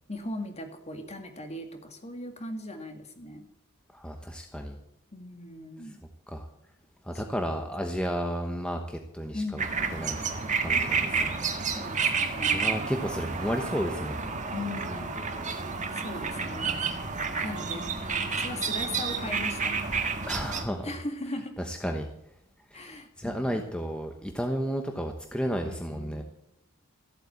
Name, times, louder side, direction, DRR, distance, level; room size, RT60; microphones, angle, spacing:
voice 1, 0.1-3.5 5.1-6.0 7.1-7.2 9.3-10.3 11.7-12.7 14.5-15.3 15.9-16.8 17.4-19.7 20.8-21.6 22.7-23.6 25.6-26.2, left 1 dB, 30° left, 6 dB, 2.0 m, -39 dB
voice 2, 3.9-4.7 6.3-6.5 7.0-9.6 9.9-10.2 10.6-11.4 12.5-14.2 16.0-16.1 20.3-20.9 21.7-22.1 22.7-26.2, equal, 5° left, 4 dB, 1.0 m, -32 dB
sound 1, 9.6-20.6, right 5 dB, 35° right, 1.6 m, -30 dB
14.5 x 8.3 x 8.3 m, 0.80 s
head